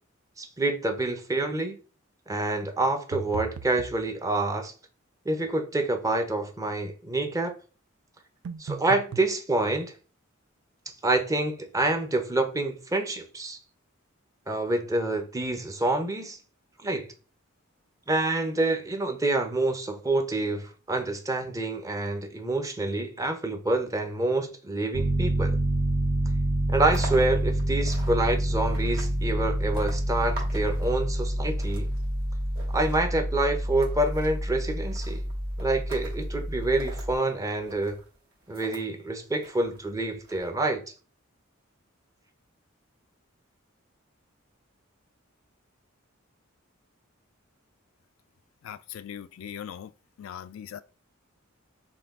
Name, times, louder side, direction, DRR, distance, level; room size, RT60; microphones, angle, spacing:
voice 1, 0.4-1.7 2.3-4.7 5.3-7.5 8.6-9.9 11.0-13.6 14.5-16.4 16.8-17.1 18.1-25.6 26.7-31.9 32.7-35.3 35.6-38.0 38.5-40.8, right 2 dB, 15° right, 0.6 m, -27 dB
sound 1, 3.1-4.0 8.4-9.3, right 6 dB, 85° right, 0.4 m, -37 dB
Piano, 24.9-37.1, right 1 dB, 70° right, 0.9 m, -28 dB
sound 2, 26.7-38.9 39.4-40.5, right 2 dB, 50° right, 2.0 m, -46 dB
voice 2, 48.6-49.9 50.2-50.8, left 9 dB, 70° left, 0.3 m, -40 dB
5.7 x 2.3 x 3.5 m
head